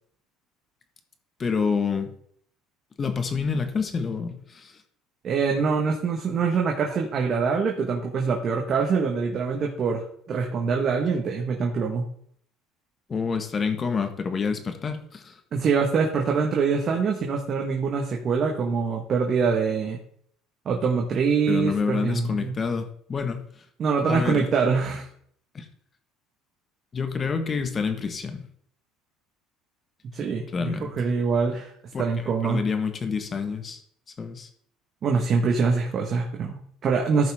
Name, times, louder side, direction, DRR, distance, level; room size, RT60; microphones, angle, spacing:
voice 1, 1.4-2.1 3.0-4.8 13.1-15.4 21.5-23.6 24.1-24.5 25.5-25.6 26.9-28.4 30.5-30.9 31.9-33.8 34.2-34.5, left 5 dB, 30° left, 7 dB, 1.5 m, -28 dB
voice 2, 5.2-12.0 15.5-20.0 20.6-22.5 23.8-25.1 30.1-31.7 32.0-32.6 35.0-37.3, right 5 dB, 45° right, 1 dB, 1.5 m, -24 dB
14.0 x 5.7 x 3.6 m, 0.63 s
supercardioid pair, 105°, 0 cm